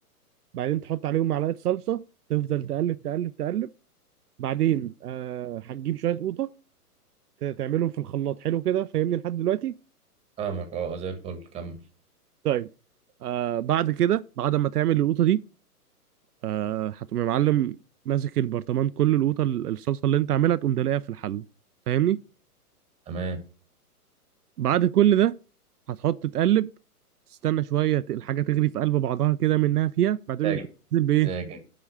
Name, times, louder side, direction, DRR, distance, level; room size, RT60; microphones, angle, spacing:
voice 1, 0.5-2.0 2.3-3.7 4.4-6.5 7.4-9.7 12.4-12.7 13.2-15.4 16.4-17.8 18.1-21.4 21.9-22.2 24.6-25.3 25.9-26.7 27.4-30.6 30.9-31.3, right 12 dB, 75° right, 0.5 m, -24 dB
voice 2, 10.4-11.8 23.1-23.4 30.4-30.6 31.2-31.6, right 6 dB, 15° right, 1.4 m, -32 dB
10.0 x 3.9 x 6.9 m
hypercardioid pair, 135°, 47 cm